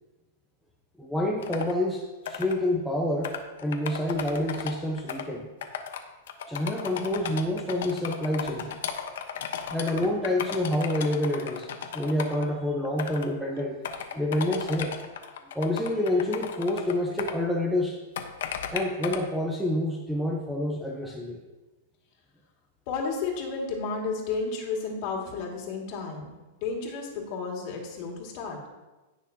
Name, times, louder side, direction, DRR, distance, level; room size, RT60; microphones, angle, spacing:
voice 1, 1.0-3.3 3.6-5.5 6.5-8.7 9.7-13.8 14.1-14.9 15.5-18.0 18.7-21.4, left 1 dB, ahead, -2 dB, 0.8 m, -28 dB
sound 1, 1.4-1.7 2.3-2.6 3.2-5.2 5.6-6.0 6.3-12.5 12.8-13.3 13.6-17.3 18.2-19.2, left 8 dB, 75° left, 1.0 m, -35 dB
voice 2, 22.9-26.3 26.6-28.6, left 4 dB, 45° left, 0 dB, 2.2 m, -32 dB
17.0 x 6.2 x 2.8 m, 1.1 s
supercardioid pair, 155°, 0 cm